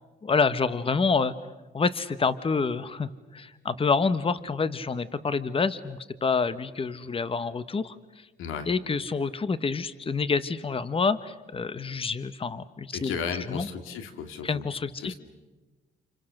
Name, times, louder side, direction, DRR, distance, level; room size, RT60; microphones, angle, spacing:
voice 1, 0.2-1.3 1.7-8.3 8.7-13.1 13.5-13.7 14.4-15.1, left 4 dB, 30° left, 14 dB, 1.2 m, -27 dB
voice 2, 12.9-14.6 15.0-15.1, left 6 dB, 90° left, 8 dB, 2.3 m, -34 dB
29.5 x 28.0 x 6.6 m, 1.2 s
cardioid pair, 90°, 20 cm